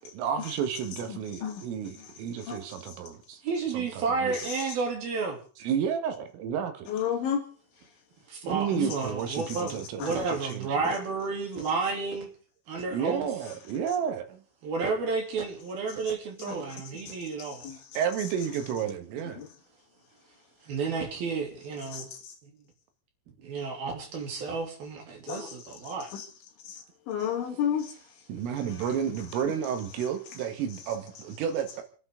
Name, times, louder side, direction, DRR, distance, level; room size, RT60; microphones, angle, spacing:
voice 1, 0.1-3.4 3.7-3.9 4.2-4.4 4.6-4.8 5.6-6.9 8.4-10.9 12.9-14.4 18.0-19.4 28.3-31.8, right 8 dB, 85° right, 4.2 m, -31 dB
voice 2, 1.1-1.6 2.5-2.6 6.9-7.4 8.7-8.9 10.0-10.2 16.5-16.6 17.1-17.2 17.6-17.8 19.4-19.5 21.9-22.2 25.3-25.5 26.1-26.3 26.7-27.9, left 8 dB, 70° left, 4.8 m, -32 dB
voice 3, 3.4-5.4 8.3-12.3 12.7-13.3 14.6-17.7 20.7-22.1 22.4-22.5 23.4-26.1, right 4 dB, 55° right, 4.5 m, -31 dB
29.5 x 11.0 x 3.7 m
omnidirectional pair, 5.7 m